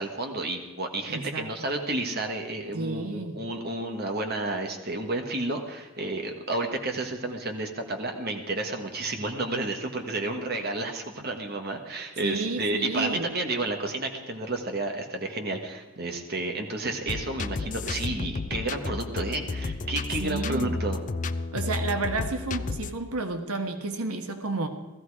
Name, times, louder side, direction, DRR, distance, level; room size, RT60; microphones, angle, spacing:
voice 1, 0.0-21.0, right 2 dB, 45° right, 4 dB, 1.6 m, -31 dB
voice 2, 1.1-1.7 2.7-3.4 12.2-13.3 20.2-20.7 21.5-24.7, right 3 dB, 90° right, 6 dB, 1.4 m, -31 dB
sound 1, 17.1-22.9, left 3 dB, 35° left, 0.5 m, -32 dB
16.5 x 14.5 x 4.9 m, 1.2 s
head